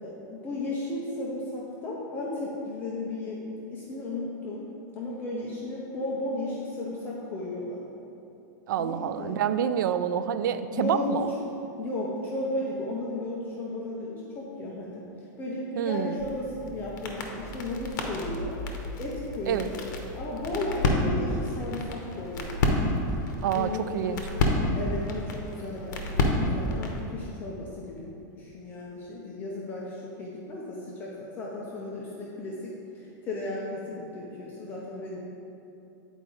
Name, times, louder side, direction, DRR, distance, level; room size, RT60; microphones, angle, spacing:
voice 1, 0.0-3.4 3.7-4.7 5.0-7.9 8.8-9.4 10.7-11.1 11.8-15.0 15.4-18.6 18.9-19.8 20.1-22.5 23.5-24.4 24.7-35.2, left 2 dB, 20° left, -4 dB, 0.6 m, -34 dB
voice 2, 8.7-11.3 15.8-16.3 19.5-19.7 23.4-24.2, right 9 dB, 80° right, 12 dB, 0.4 m, -27 dB
sound 1, 16.2-27.1, left 2 dB, 70° left, 1.0 m, -30 dB
8.9 x 4.6 x 3.9 m, 2.9 s
supercardioid pair, 170°, 10 cm